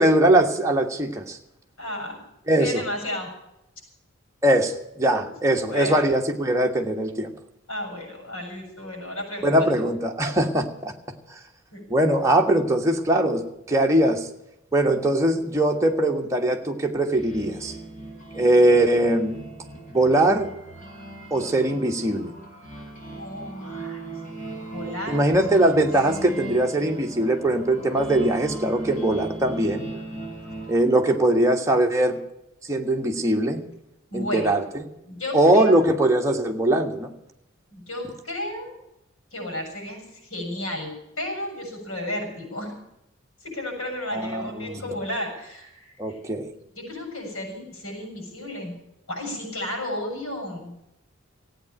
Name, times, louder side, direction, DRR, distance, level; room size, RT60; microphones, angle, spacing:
voice 1, 0.0-1.4 2.5-2.8 4.4-7.3 9.4-10.9 11.9-14.3 14.7-17.7 18.3-19.4 19.9-20.5 21.3-22.3 25.1-29.9 30.7-32.2 32.7-33.6 34.1-34.8 35.3-37.1 44.1-44.8 46.0-46.5, right 1 dB, 15° right, 1 dB, 1.4 m, -21 dB
voice 2, 1.8-2.2 2.6-3.3 5.2-5.3 5.6-6.1 7.7-9.9 11.7-11.8 23.1-24.0 24.7-25.7 34.1-34.5 35.0-35.8 37.7-38.8 39.3-40.9 41.2-42.7 43.4-46.2 46.8-48.7 49.1-50.7, left 1 dB, 85° left, 2 dB, 7.1 m, -33 dB
sound 1, 17.1-30.7, right 2 dB, 40° left, 5.2 m, -38 dB
15.5 x 9.1 x 8.8 m, 0.83 s
head